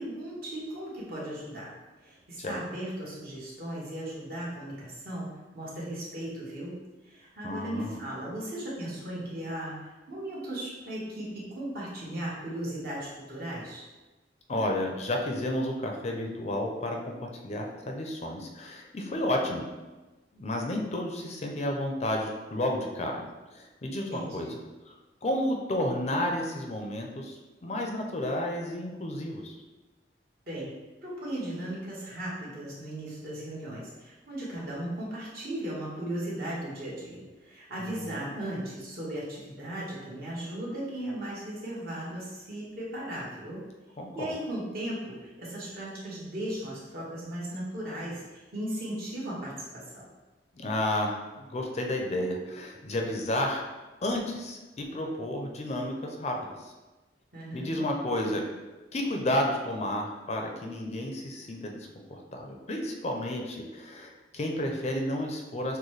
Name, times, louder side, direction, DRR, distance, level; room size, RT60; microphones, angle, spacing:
voice 1, 0.0-1.7 2.0-13.9 24.1-24.5 30.5-30.7 31.0-43.7 44.1-50.1 57.3-57.8, right 1 dB, 55° right, -6 dB, 1.4 m, -37 dB
voice 2, 7.4-8.0 14.5-19.6 20.3-24.5 24.9-25.0 25.2-29.6 37.8-38.3 44.0-44.3 50.6-53.6 54.0-56.7 57.5-58.4 58.9-65.8, left 1 dB, 40° left, 2 dB, 0.5 m, -32 dB
6.3 x 2.2 x 3.2 m, 1.2 s
head